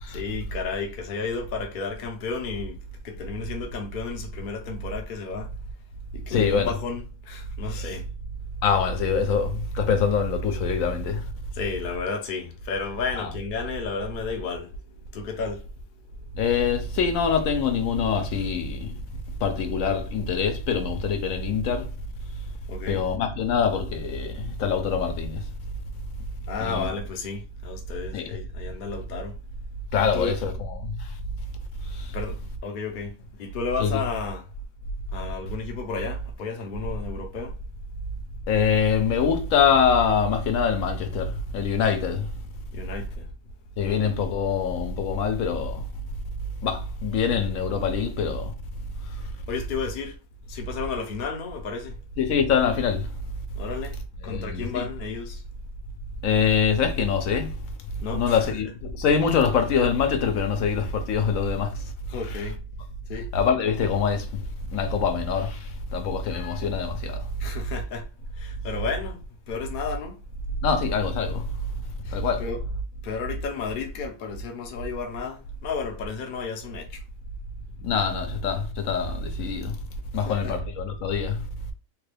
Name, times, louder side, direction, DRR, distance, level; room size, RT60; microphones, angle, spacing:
voice 1, 0.1-5.5 6.1-8.1 11.5-14.8 15.1-15.6 22.7-23.1 26.5-29.4 30.0-30.4 32.1-34.4 35.1-37.6 42.7-43.3 43.8-44.0 49.5-50.2 50.5-52.0 53.5-55.4 58.0-58.4 62.1-62.6 63.1-63.3 67.4-68.1 68.4-70.2 72.0-72.6 73.0-77.0 80.1-80.5, left 5 dB, 50° left, 0.6 m, -33 dB
voice 2, 6.3-6.7 7.8-7.9 8.6-11.3 13.1-13.3 16.3-18.9 19.4-21.9 22.9-25.5 26.6-26.9 28.1-28.3 29.9-31.1 31.9-32.1 33.8-34.0 38.5-42.3 43.8-45.9 46.6-48.5 49.1-49.3 52.2-53.1 54.2-54.9 56.2-57.6 58.1-61.9 63.3-64.4 64.7-67.3 70.6-71.5 72.1-72.5 77.8-79.8 80.1-81.5, left 6 dB, 75° left, 1.0 m, -24 dB
3.2 x 2.2 x 3.2 m
omnidirectional pair, 1.5 m